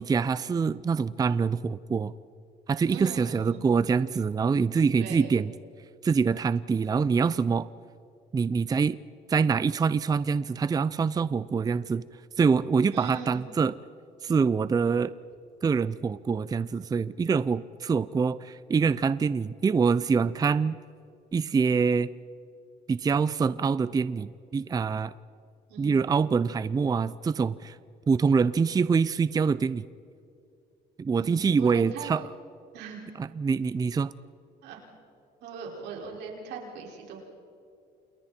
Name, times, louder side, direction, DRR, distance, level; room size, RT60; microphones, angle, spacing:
voice 1, 0.0-2.1 2.7-5.5 6.0-7.7 8.3-9.0 9.3-12.0 12.4-13.8 14.2-15.1 15.6-20.8 21.3-22.1 22.9-25.1 25.8-27.8 28.1-29.9 31.0-32.2 33.2-34.1, right 5 dB, 20° right, 16 dB, 0.5 m, -25 dB
voice 2, 2.9-3.6 5.0-5.3 12.9-13.4 25.7-26.0 31.1-32.1 32.7-33.0 34.6-34.9 35.4-37.2, right 6 dB, 85° right, -1 dB, 5.5 m, -40 dB
29.5 x 28.5 x 4.4 m, 2.5 s
cardioid pair, 110°, 17 cm